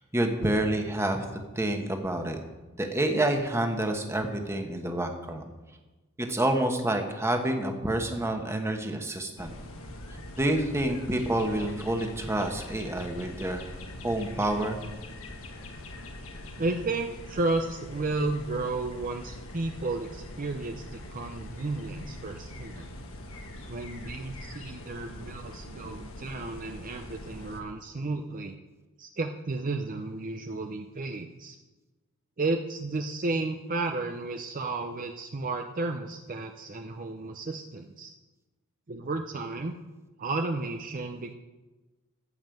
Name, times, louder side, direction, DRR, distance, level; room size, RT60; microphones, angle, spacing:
voice 1, 0.1-1.3 1.5-2.4 2.8-5.5 6.2-9.5 10.4-13.7 14.0-14.8, right 1 dB, 10° right, 4 dB, 1.2 m, -28 dB
sound 1, 9.4-27.6, left 1 dB, 65° left, 1.4 m, -43 dB
voice 2, 16.6-22.9 23.7-28.6 29.0-31.6 32.4-38.1 38.9-39.7 40.2-41.3, right 3 dB, 40° right, 5 dB, 0.6 m, -33 dB
14.5 x 5.4 x 7.8 m, 1.1 s
head